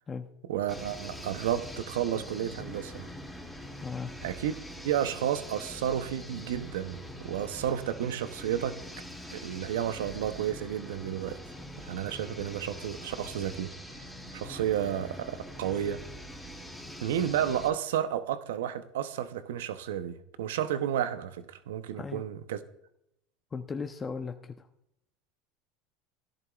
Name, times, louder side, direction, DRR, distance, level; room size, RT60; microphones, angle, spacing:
voice 1, 0.5-3.1 4.2-4.6 4.8-8.8 9.3-11.4 11.8-13.7 14.3-16.0 17.0-22.6, right 10 dB, 85° right, 12 dB, 0.7 m, -32 dB
sound 1, 0.7-17.7, equal, 5° right, 2.5 m, -44 dB
voice 2, 23.5-24.7, left 5 dB, 25° left, 6 dB, 0.7 m, -37 dB
16.5 x 11.0 x 2.4 m, 0.82 s
supercardioid pair, 100°, 0 cm